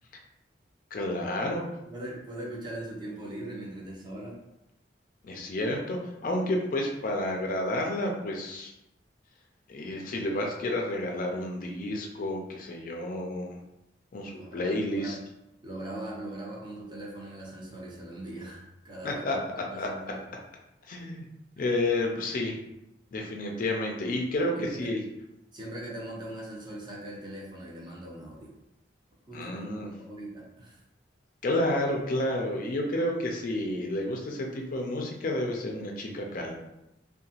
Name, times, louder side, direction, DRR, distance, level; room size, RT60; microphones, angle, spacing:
voice 1, 0.9-1.6 5.2-8.7 9.7-13.6 14.1-15.2 19.0-19.4 19.7-19.9 20.9-21.3 21.6-22.6 23.1-25.0 29.3-29.9 31.4-36.6, left 1 dB, 45° left, 1 dB, 0.4 m, -30 dB
voice 2, 1.9-4.4 14.4-15.2 15.6-20.2 21.6-21.7 24.5-24.9 25.5-28.5 29.3-30.8, right 1 dB, 25° right, -4 dB, 0.6 m, -40 dB
2.8 x 2.2 x 2.8 m, 0.89 s
head